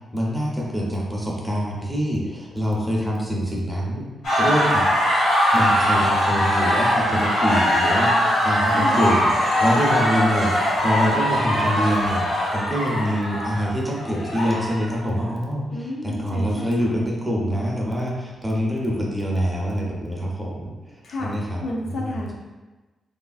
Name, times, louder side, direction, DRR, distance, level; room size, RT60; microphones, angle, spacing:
voice 1, 0.1-4.1 4.4-4.9 5.5-22.2, equal, 10° right, -3 dB, 0.5 m, -25 dB
sound 1, 4.2-15.0, equal, 90° left, 1.3 m, -21 dB
voice 2, 8.7-9.2 15.7-17.0 21.0-21.3 21.6-22.3, left 1 dB, 70° left, -2 dB, 0.5 m, -31 dB
3.2 x 2.4 x 2.3 m, 1.2 s
wide cardioid pair, 125°, 0 cm